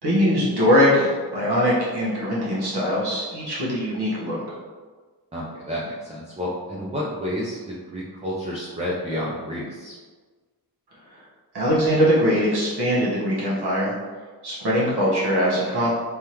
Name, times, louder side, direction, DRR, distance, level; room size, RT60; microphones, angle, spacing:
voice 1, 0.0-4.4 11.5-13.9 14.4-15.9, equal, 65° right, -7 dB, 1.4 m, -21 dB
voice 2, 5.3-10.0, equal, 15° right, -6 dB, 0.5 m, -30 dB
3.6 x 3.3 x 3.0 m, 1.4 s
wide cardioid pair, 135°, 42 cm